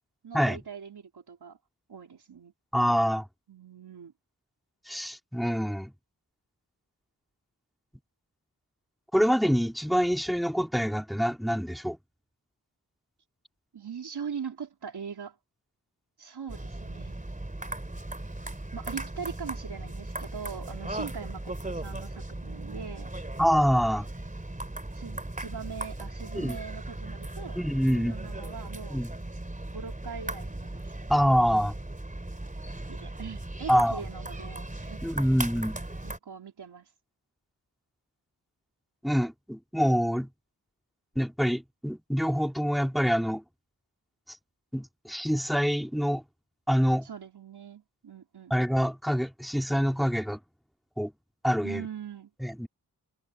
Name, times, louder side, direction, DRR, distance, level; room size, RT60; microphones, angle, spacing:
voice 1, 0.2-1.6 1.9-2.5 3.5-4.1 13.7-15.4 16.2-17.3 18.7-23.1 24.9-27.6 27.9-29.0 29.7-30.9 32.9-35.0 36.0-36.9 47.0-48.6 51.6-52.3, right 6 dB, 90° right, 3.4 m, -41 dB
voice 2, 2.7-3.3 4.9-5.9 9.1-12.0 23.4-24.1 26.3-26.6 27.6-28.2 28.9-29.1 31.1-31.7 33.7-34.0 35.0-35.8 39.0-40.3 41.2-43.4 44.7-46.2 46.7-47.1 48.5-50.4 51.0-51.1 51.4-51.9 52.4-52.7, equal, ahead, 3.4 m, -26 dB
sound 1, 16.5-36.2, right 1 dB, 20° right, 3.3 m, -38 dB
cardioid pair, 55°, 38 cm